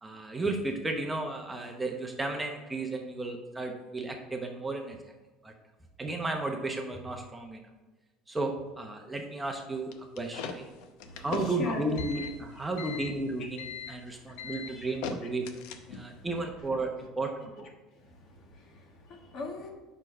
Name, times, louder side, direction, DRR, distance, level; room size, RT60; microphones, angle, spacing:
voice 1, 0.0-5.0 5.4-5.5 6.0-7.6 8.3-10.6 11.2-17.7, right 2 dB, 10° right, 2 dB, 0.8 m, -34 dB
sound 1, 9.9-16.2, left 5 dB, 75° left, 0.7 m, -39 dB
voice 2, 11.0-11.9 12.8-13.0 14.1-14.9 16.0-16.3 17.6-17.7 17.9-19.7, left 2 dB, 50° left, 2 dB, 1.4 m, -42 dB
5.5 x 4.4 x 6.2 m, 1.2 s
cardioid pair, 130°, 0 cm